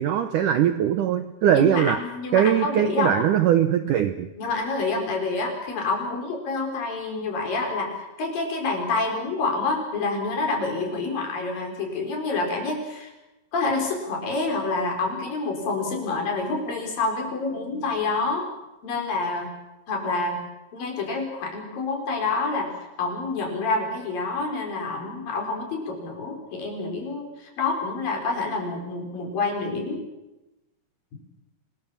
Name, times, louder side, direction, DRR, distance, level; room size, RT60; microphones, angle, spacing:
voice 1, 0.0-2.0 2.3-4.3, right 10 dB, 75° right, 9 dB, 2.0 m, -21 dB
voice 2, 1.5-3.2 4.4-13.1 13.5-18.5 18.8-19.5 19.9-20.4 20.7-22.7 23.0-30.0 31.1-31.2, left 3 dB, 55° left, 2 dB, 6.3 m, -27 dB
26.5 x 20.5 x 7.3 m, 0.99 s
omnidirectional pair, 4.7 m